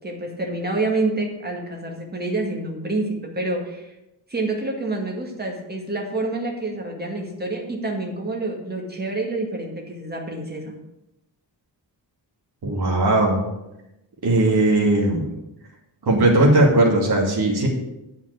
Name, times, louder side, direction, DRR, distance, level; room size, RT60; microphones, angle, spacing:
voice 1, 0.0-3.9 4.3-10.8, right 2 dB, 20° right, 0 dB, 2.0 m, -27 dB
voice 2, 12.6-13.4 14.2-15.3 16.1-17.7, right 2 dB, 60° right, -3 dB, 2.5 m, -18 dB
9.0 x 5.7 x 8.2 m, 0.92 s
wide cardioid pair, 160°, 43 cm